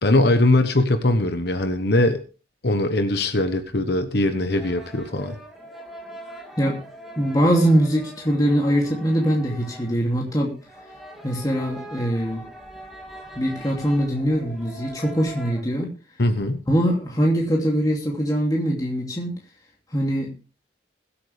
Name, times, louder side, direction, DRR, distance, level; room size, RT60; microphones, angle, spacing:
voice 1, 0.0-2.2 2.6-5.3 16.2-16.6, left 1 dB, 55° left, 8 dB, 1.2 m, -21 dB
sound 1, 4.5-15.6, right 1 dB, ahead, 2.7 m, -42 dB
voice 2, 7.2-10.5 11.2-12.4 13.3-15.9 16.7-19.4 19.9-20.3, equal, 20° left, -2 dB, 2.7 m, -22 dB
21.5 x 8.6 x 3.4 m, 0.35 s
head